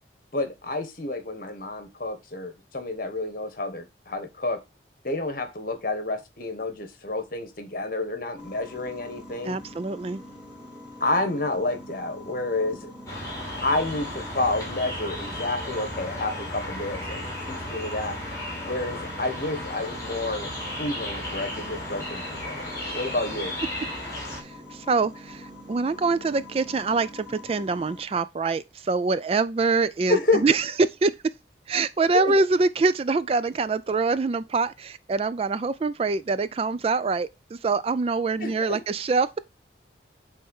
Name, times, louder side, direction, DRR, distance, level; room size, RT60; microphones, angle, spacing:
voice 1, 0.3-4.6 5.0-9.6 11.0-12.9 13.6-17.2 17.5-18.2 18.6-20.5 20.8-22.6 22.9-23.6 30.1-30.5 32.1-32.3 38.4-38.8, left 2 dB, 50° left, 1.3 m, -29 dB
sound 1, 8.4-28.0, left 1 dB, 5° right, 2.9 m, -44 dB
voice 2, 9.4-10.2 24.4-30.7 31.0-31.1 31.7-39.4, right 4 dB, 35° right, 0.3 m, -25 dB
sound 2, 13.1-24.4, left 1 dB, 20° left, 3.2 m, -35 dB
8.5 x 3.4 x 5.4 m
head